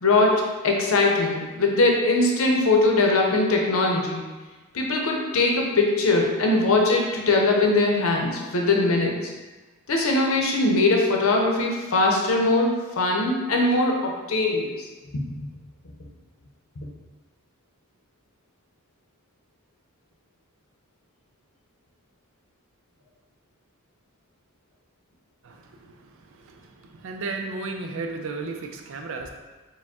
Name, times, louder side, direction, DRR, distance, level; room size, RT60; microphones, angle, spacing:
voice 1, 0.0-4.2 4.7-9.2 9.9-14.7 15.1-15.4 16.8-16.9, left 2 dB, 70° left, 0 dB, 0.7 m, -21 dB
voice 2, 27.0-29.3, right 3 dB, 65° right, 4 dB, 0.4 m, -32 dB
4.8 x 2.2 x 3.5 m, 1.2 s
head